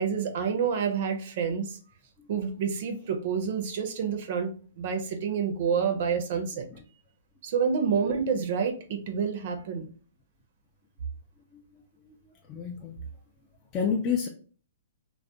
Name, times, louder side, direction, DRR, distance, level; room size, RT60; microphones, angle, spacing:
voice 1, 0.0-1.8 2.3-6.7 7.4-9.9, right 6 dB, 55° right, 5 dB, 0.5 m, -28 dB
voice 2, 12.5-13.0 13.7-14.3, left 6 dB, 25° left, 1 dB, 0.4 m, -29 dB
2.3 x 2.1 x 2.7 m, 0.42 s
hypercardioid pair, 140°, 0 cm